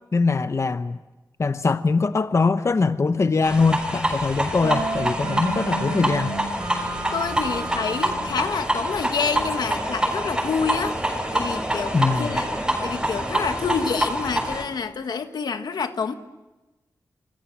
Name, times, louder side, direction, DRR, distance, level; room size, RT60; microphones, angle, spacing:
voice 1, 0.1-1.0 1.4-6.3 11.9-12.4, left 4 dB, 45° left, 11 dB, 0.9 m, -22 dB
sound 1, 3.4-14.6, right 1 dB, 10° right, 6.2 m, -26 dB
sound 2, 4.6-8.4, right 3 dB, 80° right, 4.8 m, -32 dB
voice 2, 7.1-12.5 12.8-16.1, left 5 dB, 90° left, 8 dB, 1.6 m, -28 dB
28.0 x 25.5 x 7.4 m, 1.1 s
wide cardioid pair, 90°, 7 cm